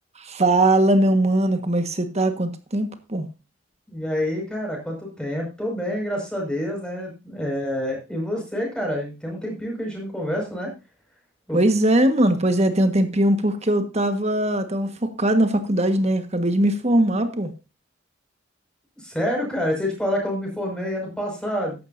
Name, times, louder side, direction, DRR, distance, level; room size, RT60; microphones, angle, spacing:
voice 1, 0.2-3.3 11.5-17.5, right 1 dB, 35° right, 1.5 m, -20 dB
voice 2, 3.9-10.7 11.5-11.6 19.0-21.8, equal, 5° left, 5.6 m, -27 dB
14.5 x 11.0 x 2.7 m
head